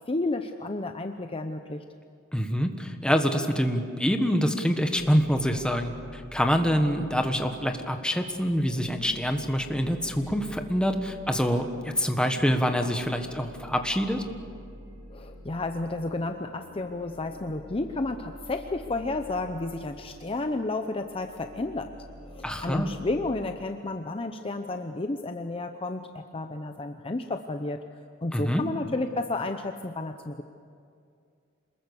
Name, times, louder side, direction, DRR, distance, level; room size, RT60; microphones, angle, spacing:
voice 1, 0.0-1.8 15.1-21.9 22.2-27.8 28.2-30.4, left 2 dB, 25° left, 6 dB, 0.8 m, -32 dB
voice 2, 2.3-14.2 22.4-22.9 28.3-28.6, equal, 5° left, 5 dB, 1.5 m, -26 dB
sound 1, 5.0-23.4, equal, 45° right, 4.0 m, -47 dB
27.0 x 20.5 x 7.0 m, 2.4 s
head